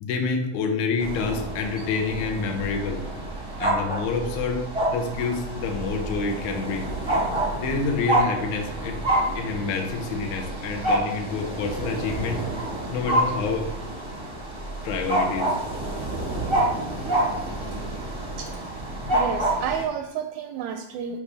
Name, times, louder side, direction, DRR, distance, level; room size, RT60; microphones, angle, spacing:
voice 1, 0.0-3.0 3.6-4.6 4.9-6.9 7.6-9.0 9.4-12.4 12.9-13.7 14.8-15.6, left 4 dB, 75° left, 4 dB, 2.1 m, -28 dB
sound 1, 1.0-19.8, right 1 dB, 25° right, 0.6 m, -28 dB
voice 2, 18.4-21.2, right 7 dB, 80° right, 7 dB, 1.7 m, -31 dB
7.2 x 5.8 x 3.4 m, 0.88 s
omnidirectional pair, 3.6 m